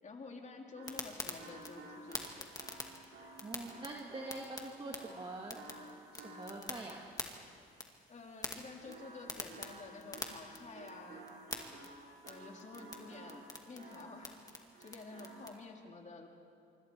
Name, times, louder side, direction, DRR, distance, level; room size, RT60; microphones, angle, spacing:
voice 1, 0.0-2.5 8.1-11.3 12.2-14.4 14.8-16.3, left 3 dB, 35° left, 2 dB, 3.0 m, -50 dB
sound 1, 0.8-15.5, left 2 dB, 20° left, 2.2 m, -48 dB
sound 2, 0.8-6.9 8.8-14.4 14.7-15.5, right 2 dB, 70° right, 4.9 m, -53 dB
voice 2, 3.4-7.0, right 2 dB, 25° right, -1 dB, 2.2 m, -45 dB
26.0 x 23.5 x 4.6 m, 2.4 s
cardioid pair, 90°, 20 cm